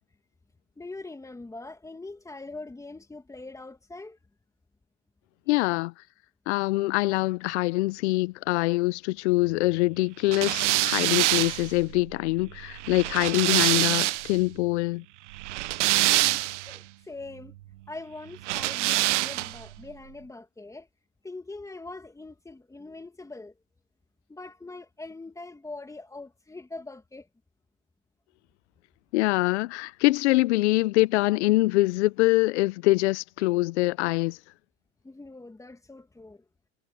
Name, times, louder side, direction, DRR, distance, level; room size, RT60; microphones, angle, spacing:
voice 1, 0.8-4.2 5.5-5.6 16.2-17.5 17.9-20.9 21.2-23.5 24.3-27.3 35.0-36.4, left 2 dB, 10° left, 2.1 m, -42 dB
voice 2, 5.5-5.9 6.5-15.0 29.1-34.4, left 21 dB, 70° left, 0.6 m, -24 dB
sound 1, 10.3-14.4 15.3-16.8 18.4-19.7, right 17 dB, 80° right, 0.7 m, -25 dB
hypercardioid pair, 110°, 35 cm